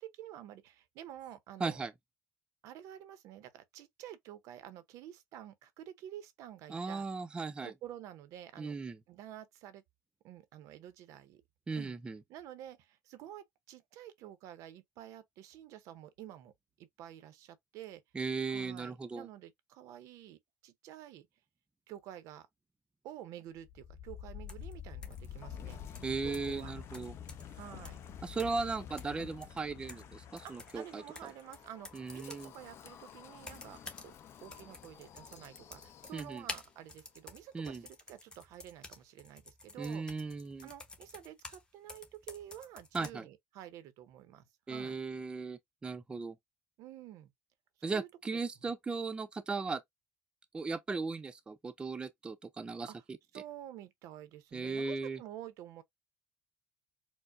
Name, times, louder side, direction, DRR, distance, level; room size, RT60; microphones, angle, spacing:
voice 1, 0.0-1.8 2.6-7.1 7.6-8.8 9.1-9.8 10.2-11.4 11.7-12.0 12.3-16.5 16.8-18.0 18.5-21.3 21.9-22.5 23.0-25.8 26.4-26.7 27.5-28.0 30.4-33.8 34.0-34.1 34.4-40.0 40.6-45.0 46.8-47.3 47.8-48.1 48.6-48.7 52.9-53.0 53.3-55.8, right 12 dB, 70° right, 0.6 m, -50 dB
voice 2, 1.6-1.9 6.7-7.7 8.6-9.0 11.7-12.2 18.1-19.3 26.0-27.1 28.2-31.0 31.9-32.5 36.1-36.4 37.5-37.8 39.8-40.7 42.9-43.3 44.7-46.4 47.8-49.8 50.5-52.9 54.5-55.2, right 4 dB, 15° right, 0.4 m, -37 dB
Wind, 23.6-36.6, left 8 dB, 50° left, 0.7 m, -49 dB
sound 1, 24.5-24.7 25.0-25.3 25.9-26.6 26.9-27.6 27.8-28.0 28.4-28.7 29.0-30.1 30.4-32.5 33.4-34.1 34.4-41.6 41.9-43.1, left 2 dB, 15° left, 0.9 m, -50 dB
4.5 x 2.0 x 2.5 m
cardioid pair, 120°, 6 cm